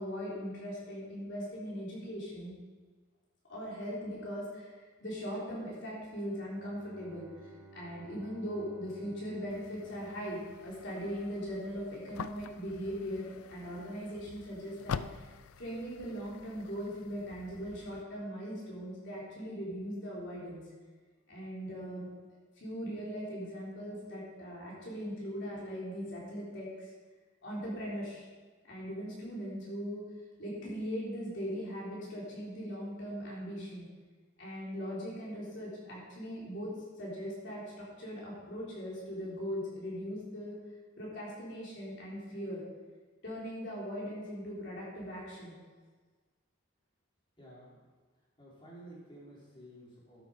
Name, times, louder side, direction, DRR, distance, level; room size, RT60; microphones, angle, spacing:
voice 1, 0.0-2.5 3.5-7.5 7.7-15.2 15.6-20.6 21.3-22.1 22.6-26.9 27.4-28.2 28.6-30.0 30.4-33.9 34.4-40.6 41.0-42.6 43.2-45.5, equal, 55° left, -6 dB, 4.1 m, -40 dB
Bowed string instrument, 6.0-11.0, right 2 dB, 5° right, 1.9 m, -56 dB
sound 1, 9.5-18.0, left 6 dB, 90° left, 0.4 m, -46 dB
voice 2, 47.4-47.9 48.4-50.2, right 1 dB, 25° left, -7 dB, 4.0 m, -52 dB
12.5 x 8.0 x 5.2 m, 1.4 s
head